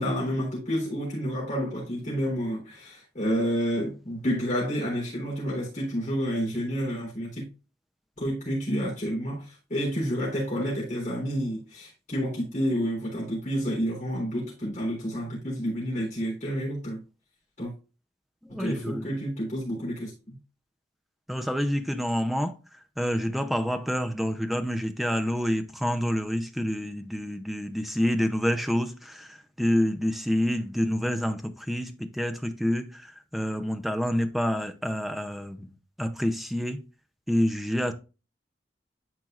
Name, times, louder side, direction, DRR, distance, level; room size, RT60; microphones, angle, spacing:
voice 1, 0.0-7.5 8.2-17.0 17.6-17.7 18.5-20.4, equal, 40° left, 3.5 m, -29 dB
voice 2, 18.5-19.0 21.3-22.5 23.0-33.0 33.3-35.7 36.0-36.8 37.3-37.9, equal, ahead, 0.6 m, -28 dB
12.0 x 4.6 x 2.5 m
head